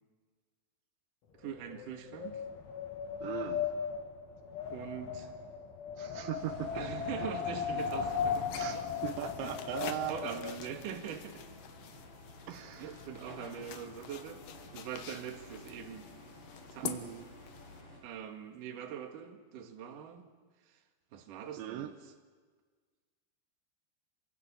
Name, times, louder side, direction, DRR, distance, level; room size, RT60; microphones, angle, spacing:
Wind, 1.4-10.6, left 6 dB, 80° left, 4.9 m, -37 dB
voice 1, 1.4-2.4 4.7-5.3 6.7-8.5 9.4-9.5 9.8-11.4 12.8-14.4 14.7-16.1 16.7-16.9 18.0-20.3 21.1-21.9, right 8 dB, 55° right, 4 dB, 3.0 m, -42 dB
voice 2, 3.2-3.7 6.0-6.8 8.5-10.3 12.5-13.0 16.8-17.3 21.6-21.9, right 12 dB, 80° right, 8 dB, 3.2 m, -39 dB
sound 1, 6.4-18.0, left 2 dB, 45° left, 9.0 m, -52 dB
sound 2, 7.8-17.8, left 9 dB, 65° left, 2.4 m, -48 dB
27.5 x 25.0 x 7.2 m, 1.5 s
omnidirectional pair, 5.3 m